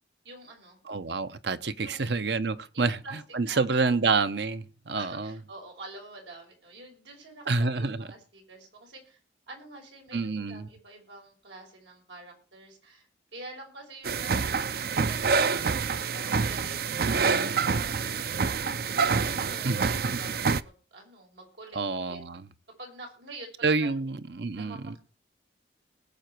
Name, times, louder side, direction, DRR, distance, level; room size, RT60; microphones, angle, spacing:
voice 1, 0.2-0.8 1.8-2.2 2.7-3.2 3.5-3.6 4.9-9.2 9.5-17.3 17.7-18.5 19.1-22.2 22.8-23.9 24.6-25.0, right 2 dB, 85° right, 5.8 m, -47 dB
voice 2, 0.9-3.0 3.3-5.3 7.5-8.1 10.1-10.7 17.1-17.5 19.6-19.8 20.1-20.2 21.7-22.5 23.6-25.0, right 4 dB, 70° right, 0.9 m, -28 dB
sound 1, 14.0-20.6, right 5 dB, 55° right, 0.5 m, -27 dB
20.0 x 7.8 x 4.6 m
head